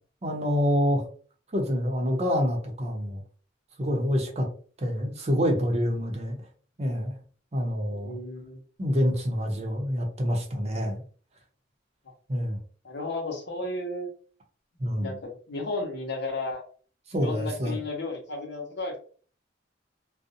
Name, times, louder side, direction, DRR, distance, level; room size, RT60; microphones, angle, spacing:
voice 1, 0.2-1.1 1.5-3.2 3.8-4.5 4.8-6.4 6.8-7.1 7.5-8.1 8.8-11.0 12.3-12.6 14.8-15.2 17.1-17.8, equal, 35° right, 1 dB, 0.6 m, -27 dB
voice 2, 7.9-8.6 12.8-14.1 15.0-16.6 17.2-19.0, left 2 dB, 65° left, 2 dB, 0.8 m, -33 dB
2.4 x 2.0 x 2.7 m, 0.42 s
head